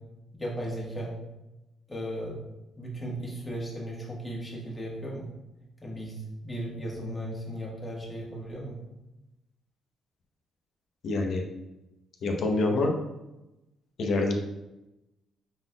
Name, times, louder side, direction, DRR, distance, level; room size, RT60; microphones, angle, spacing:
voice 1, 0.4-1.1 1.9-2.4 2.8-5.3 5.8-8.8, right 1 dB, 20° left, -4 dB, 1.5 m, -36 dB
voice 2, 11.0-11.4 12.2-12.9 14.0-14.4, left 2 dB, 65° left, 2 dB, 0.8 m, -26 dB
5.4 x 4.0 x 2.3 m, 0.97 s
cardioid pair, 90°, 0 cm